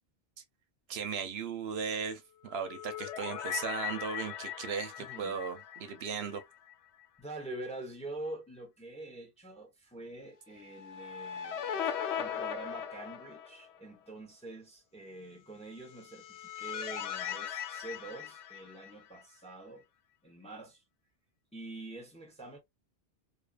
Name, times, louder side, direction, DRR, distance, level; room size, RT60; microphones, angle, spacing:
voice 1, 0.9-6.4, right 6 dB, 70° right, 0.8 m, -37 dB
sound 1, 2.4-6.7 7.0-7.1 10.7-13.8 15.8-19.2, left 9 dB, 80° left, 0.8 m, -39 dB
voice 2, 5.0-5.4 7.2-11.6 12.2-19.9 20.2-20.8 21.5-22.6, right 2 dB, 5° left, 0.6 m, -45 dB
2.6 x 2.4 x 2.2 m
omnidirectional pair, 1.1 m